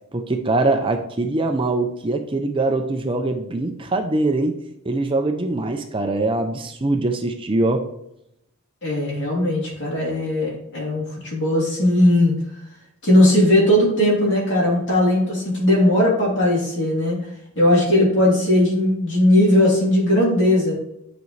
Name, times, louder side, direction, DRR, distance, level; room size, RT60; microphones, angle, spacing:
voice 1, 0.1-7.9, right 2 dB, 25° right, 6 dB, 0.5 m, -23 dB
voice 2, 8.8-12.3 13.0-17.2 17.5-20.7, left 1 dB, 55° left, -4 dB, 3.2 m, -18 dB
9.5 x 5.2 x 3.2 m, 0.79 s
head